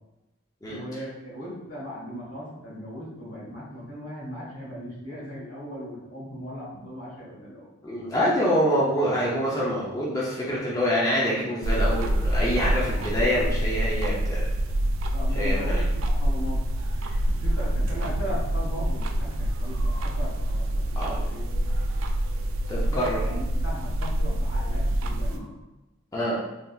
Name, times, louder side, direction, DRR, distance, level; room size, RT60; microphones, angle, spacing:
voice 1, 0.6-7.7 12.9-13.1 15.1-16.6 17.3-21.4 22.7-25.5, equal, 85° left, -6 dB, 1.5 m, -38 dB
voice 2, 7.8-14.4 15.4-15.8 21.0-21.1 22.7-23.2 26.1-26.4, equal, 20° left, -6 dB, 0.6 m, -26 dB
sound 1, 11.6-25.4, right 1 dB, 85° right, 0.3 m, -26 dB
3.3 x 2.7 x 2.3 m, 1.0 s
head